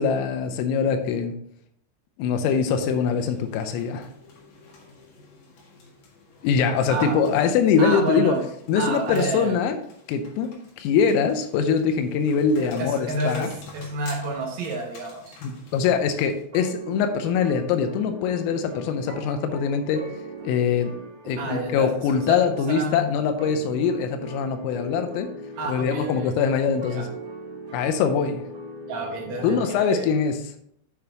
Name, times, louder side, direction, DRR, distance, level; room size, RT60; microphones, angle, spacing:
voice 1, 0.0-1.4 2.2-4.1 6.4-8.4 8.7-9.8 10.1-10.5 10.8-13.5 15.4-20.1 20.4-20.9 21.3-25.3 25.7-27.1 27.7-28.4 29.4-30.4, left 6 dB, 85° left, 7 dB, 3.4 m, -23 dB
sound 1, 2.4-16.4, left 3 dB, 60° left, 2.5 m, -48 dB
voice 2, 7.8-8.4 8.7-9.5 12.6-15.4 21.4-21.9 22.3-22.4 22.7-23.1 25.6-26.3 26.9-27.0 28.9-30.1, right 2 dB, 85° right, -2 dB, 1.5 m, -29 dB
sound 2, 16.5-30.2, right 1 dB, 45° right, 3.9 m, -40 dB
10.5 x 6.9 x 2.9 m, 0.68 s
omnidirectional pair, 5.9 m